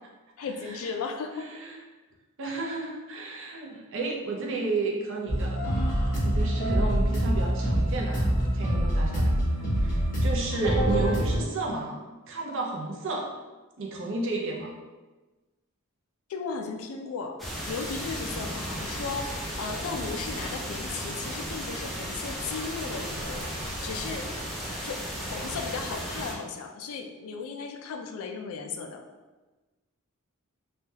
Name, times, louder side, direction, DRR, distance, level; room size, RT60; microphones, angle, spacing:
voice 1, 0.4-1.5 16.3-17.4 17.7-23.5 23.8-24.3 24.8-29.0, left 5 dB, 65° left, 4 dB, 0.3 m, -36 dB
voice 2, 1.4-1.8 2.4-5.6 6.2-9.3 9.8-12.0 12.3-13.3 13.8-14.7, right 2 dB, 60° right, -1 dB, 0.6 m, -32 dB
sound 1, 5.3-11.4, right 1 dB, 40° left, 1.2 m, -25 dB
sound 2, 17.4-26.3, equal, ahead, 0.4 m, -35 dB
3.3 x 2.2 x 2.7 m, 1.2 s
head